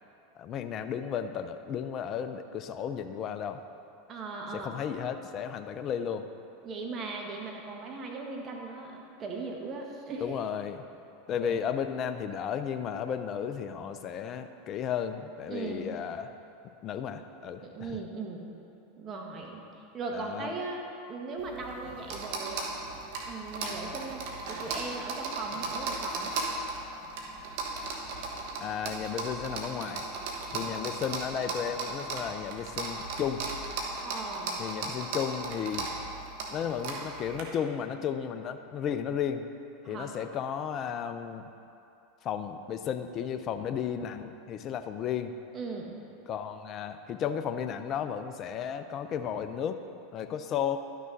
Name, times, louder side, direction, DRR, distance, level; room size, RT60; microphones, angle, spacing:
voice 1, 0.4-3.6 4.5-6.3 10.2-10.8 11.3-16.3 16.8-18.0 20.1-20.5 28.6-30.1 30.5-33.4 34.6-35.9 36.5-39.5 39.8-41.5 42.2-45.3 46.3-49.8 50.1-50.8, left 8 dB, 40° left, 8 dB, 0.6 m, -34 dB
voice 2, 4.1-4.7 6.6-10.3 11.4-11.6 15.5-15.9 17.6-18.4 19.0-20.8 21.1-22.8 23.3-26.3 30.7-31.0 34.0-34.6 39.8-40.1 45.5-46.0, right 3 dB, 35° right, 0 dB, 1.5 m, -38 dB
sound 1, 21.4-37.4, right 3 dB, 65° right, 1.3 m, -36 dB
12.0 x 6.2 x 4.1 m, 2.7 s
hypercardioid pair, 95°, 0 cm